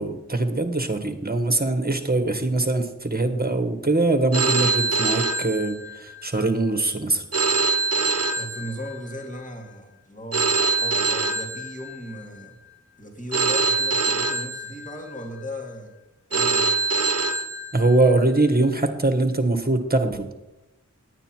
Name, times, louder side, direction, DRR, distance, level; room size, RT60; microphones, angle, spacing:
voice 1, 0.0-7.2 17.7-20.4, right 2 dB, 30° right, 7 dB, 1.5 m, -22 dB
Telephone, 4.3-6.2 7.3-9.2 10.3-12.2 13.3-15.2 16.3-18.2, right 3 dB, 50° right, 0.9 m, -24 dB
voice 2, 8.4-12.6 13.0-15.9 16.3-16.8, equal, 25° left, 1 dB, 2.3 m, -37 dB
10.5 x 9.2 x 4.5 m, 0.95 s
wide cardioid pair, 45°, 31 cm